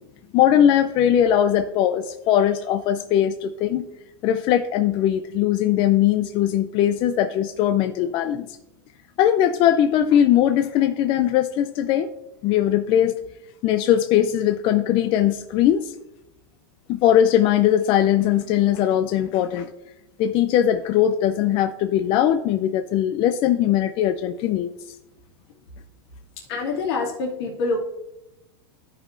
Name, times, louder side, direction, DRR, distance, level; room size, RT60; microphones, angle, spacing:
voice 1, 0.3-3.8 4.2-8.5 9.2-12.1 12.4-13.1 13.6-15.9 16.9-19.7 20.2-24.7, left 10 dB, 35° left, 7 dB, 0.5 m, -20 dB
voice 2, 26.4-27.8, left 3 dB, 70° left, -4 dB, 2.5 m, -26 dB
14.0 x 5.4 x 2.6 m, 0.90 s
supercardioid pair, 140°, 14 cm